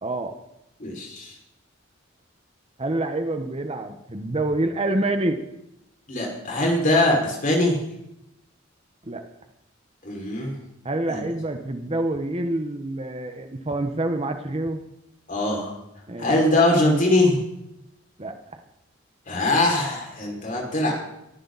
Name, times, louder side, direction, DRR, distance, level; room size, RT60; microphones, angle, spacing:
voice 1, 0.0-0.4 2.8-5.4 9.1-9.2 10.8-14.8 16.1-16.3 18.2-18.3, right 2 dB, 30° right, 6 dB, 1.2 m, -27 dB
voice 2, 0.8-1.4 6.1-7.8 10.0-10.6 11.1-11.2 15.3-15.7 16.2-17.4 19.3-21.0, left 1 dB, 40° left, -1 dB, 5.6 m, -22 dB
23.0 x 15.0 x 4.2 m, 0.85 s
head